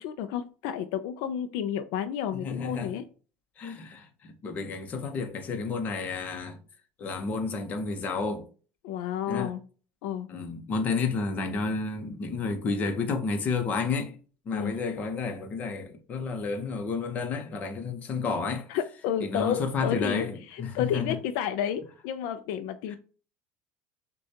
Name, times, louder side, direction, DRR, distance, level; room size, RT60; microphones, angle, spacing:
voice 1, 0.0-3.0 8.8-9.6 10.0-10.3 14.5-14.8 18.7-22.9, left 9 dB, 70° left, 0.4 m, -31 dB
voice 2, 2.3-3.0 3.6-6.6 7.0-8.5 9.3-9.5 10.3-14.2 14.4-18.7 19.2-21.2 22.9-23.0, left 4 dB, 35° left, 0.8 m, -31 dB
6.3 x 2.3 x 2.8 m
cardioid pair, 145°, 5 cm